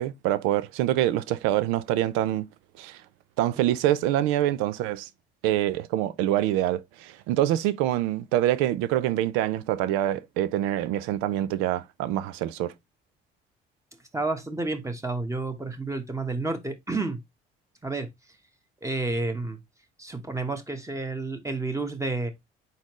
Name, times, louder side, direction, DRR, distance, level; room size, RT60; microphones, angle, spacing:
voice 1, 0.0-2.4 2.8-3.0 3.4-5.1 5.4-12.7, right 13 dB, 85° right, 0.5 m, -25 dB
voice 2, 14.1-17.2 17.8-18.1 18.8-19.6 20.0-22.3, right 3 dB, 15° right, 1.1 m, -30 dB
4.2 x 3.8 x 3.0 m
supercardioid pair, 65°, 20 cm